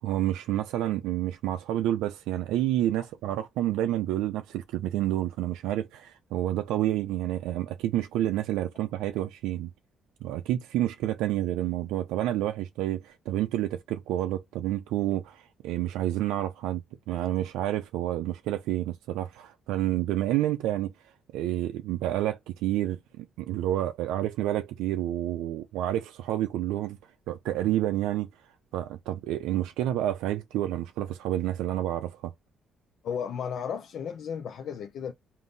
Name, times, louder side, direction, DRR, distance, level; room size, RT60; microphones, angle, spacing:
voice 1, 0.0-9.7 10.2-16.8 17.1-20.9 21.3-27.0 27.3-28.3 28.7-32.3, right 13 dB, 90° right, 0.4 m, -29 dB
voice 2, 33.0-35.1, left 7 dB, 70° left, 0.6 m, -34 dB
3.6 x 2.6 x 3.9 m
cardioid pair, 85°, 0 cm